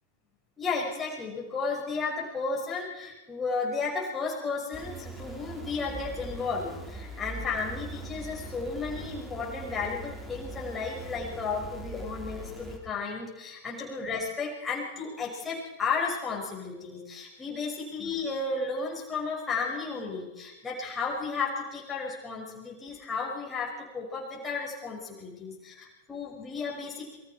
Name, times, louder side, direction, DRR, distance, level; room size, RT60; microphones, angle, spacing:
voice 1, 0.6-27.2, left 4 dB, 15° left, -3 dB, 6.0 m, -33 dB
sound 1, 4.7-12.8, right 2 dB, 10° right, 4.4 m, -41 dB
27.5 x 22.5 x 4.5 m, 1.0 s
figure-of-eight pair, 90°, 0 cm